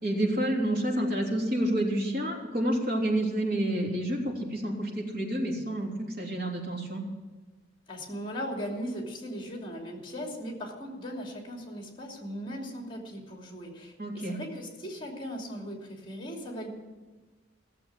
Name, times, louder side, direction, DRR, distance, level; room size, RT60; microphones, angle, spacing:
voice 1, 0.0-7.1 14.0-14.4, right 1 dB, 50° right, -1 dB, 3.3 m, -29 dB
voice 2, 7.9-16.7, equal, 25° left, 1 dB, 2.8 m, -38 dB
16.5 x 7.7 x 7.6 m, 1.3 s
head